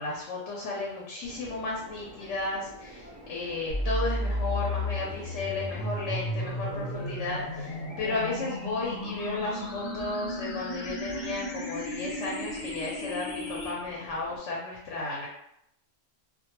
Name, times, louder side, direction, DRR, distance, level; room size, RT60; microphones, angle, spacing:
voice 1, 0.0-3.0 3.3-15.3, left 3 dB, 70° left, -3 dB, 0.9 m, -34 dB
Subway metro underground, 1.2-14.4, equal, 30° right, 0.5 m, -48 dB
sound 1, 3.7-13.7, left 1 dB, 55° left, 0.4 m, -34 dB
2.2 x 2.2 x 2.9 m, 0.79 s
omnidirectional pair, 1.3 m